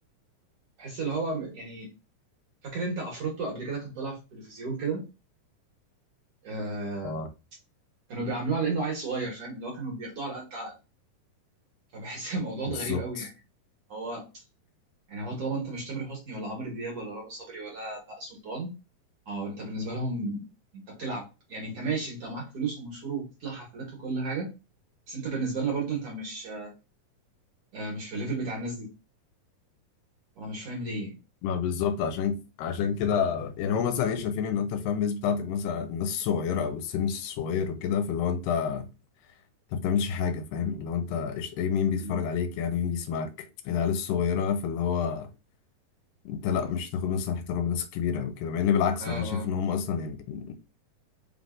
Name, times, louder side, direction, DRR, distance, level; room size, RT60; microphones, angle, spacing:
voice 1, 0.8-1.9 2.6-5.0 6.4-7.2 8.1-10.7 11.9-13.3 13.9-14.4 15.1-18.7 19.3-20.5 20.7-24.5 25.1-26.7 27.7-28.9 30.4-31.2 42.0-42.2 49.0-49.5, right 3 dB, 55° right, 1.8 m, -33 dB
voice 2, 12.7-13.3 31.4-38.9 39.7-45.3 46.3-50.5, left 7 dB, 85° left, 2.2 m, -28 dB
5.2 x 3.7 x 2.4 m
omnidirectional pair, 4.0 m